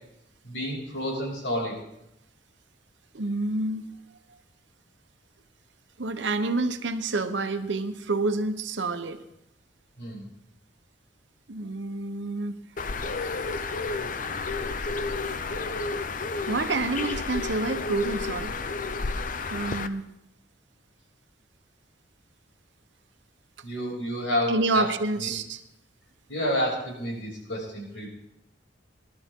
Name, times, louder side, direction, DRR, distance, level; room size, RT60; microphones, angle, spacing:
voice 1, 0.4-1.8 10.0-10.3 23.6-24.8 25.2-25.3 26.3-28.1, equal, 80° left, -2 dB, 6.6 m, -29 dB
voice 2, 3.1-3.8 6.0-9.2 11.5-12.6 15.5-15.8 16.3-18.5 19.5-20.0 24.5-25.6, right 3 dB, 75° right, 9 dB, 1.0 m, -28 dB
Bird, 12.8-19.9, left 4 dB, 45° left, 0.7 m, -31 dB
21.0 x 12.5 x 3.7 m, 0.83 s
head